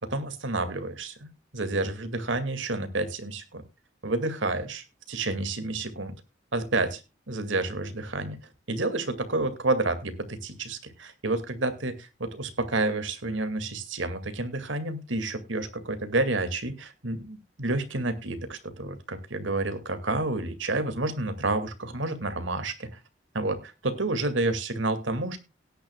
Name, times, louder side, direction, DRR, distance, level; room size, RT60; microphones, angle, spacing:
voice 1, 0.0-3.7 4.0-6.1 6.5-7.0 7.3-8.4 8.7-23.0 23.3-25.4, right 2 dB, 85° right, 10 dB, 2.2 m, -29 dB
17.5 x 10.5 x 2.3 m, 0.27 s
head